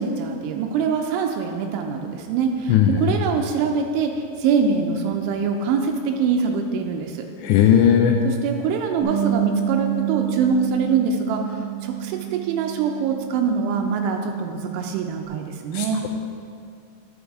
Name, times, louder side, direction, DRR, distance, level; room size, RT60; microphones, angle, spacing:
voice 1, 0.0-7.3 7.6-7.7 8.2-16.1, right 5 dB, 85° right, 3 dB, 3.1 m, -24 dB
voice 2, 2.7-3.0 7.4-8.2 15.8-16.1, left 9 dB, 85° left, 2 dB, 2.7 m, -17 dB
Bass guitar, 9.0-15.3, right 11 dB, 55° left, 2.5 m, -29 dB
11.0 x 7.0 x 4.7 m, 2.3 s
omnidirectional pair, 5.4 m